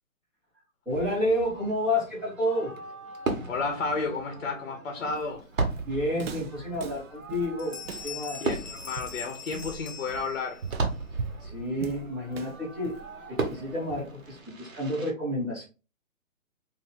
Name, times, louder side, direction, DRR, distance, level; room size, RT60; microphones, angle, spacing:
voice 1, 0.8-2.7 5.8-8.4 11.1-12.9 13.3-15.6, left 1 dB, ahead, 0.7 m, -30 dB
Fireworks, 0.9-15.1, right 3 dB, 70° right, 1.2 m, -37 dB
voice 2, 3.4-5.5 8.4-10.6, left 4 dB, 55° left, 0.8 m, -32 dB
Walk footsteps, 5.1-14.3, right 5 dB, 50° right, 0.4 m, -40 dB
Bell, 7.1-7.3 7.6-10.7, left 6 dB, 40° left, 0.4 m, -42 dB
2.7 x 2.7 x 3.8 m
hypercardioid pair, 155°, 40 cm